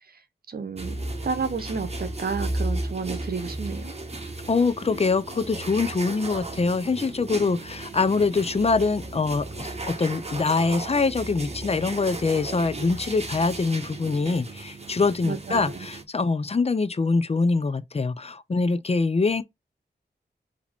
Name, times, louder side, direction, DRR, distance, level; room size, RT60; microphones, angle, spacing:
voice 1, 0.5-1.0 1.2-3.9 15.2-15.9, right 5 dB, 60° right, 0.9 m, -31 dB
sound 1, 0.8-16.0, right 2 dB, 35° right, 1.1 m, -35 dB
voice 2, 4.5-19.4, left 4 dB, 35° left, 0.6 m, -24 dB
4.8 x 2.9 x 3.5 m
wide cardioid pair, 70°, 18 cm